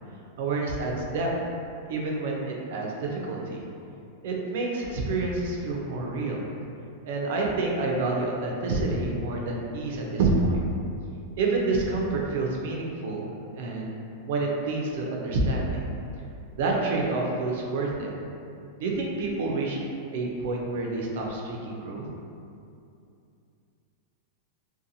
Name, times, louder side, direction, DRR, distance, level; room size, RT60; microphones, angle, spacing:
voice 1, 0.4-1.3 1.9-3.7 4.2-6.5 7.0-10.6 11.4-13.3 13.5-14.0 14.3-15.8 16.6-18.1 18.8-19.8 20.1-22.1, right 3 dB, 65° right, -1 dB, 0.4 m, -28 dB
2.7 x 2.2 x 2.6 m, 2.6 s
supercardioid pair, 150°, 0 cm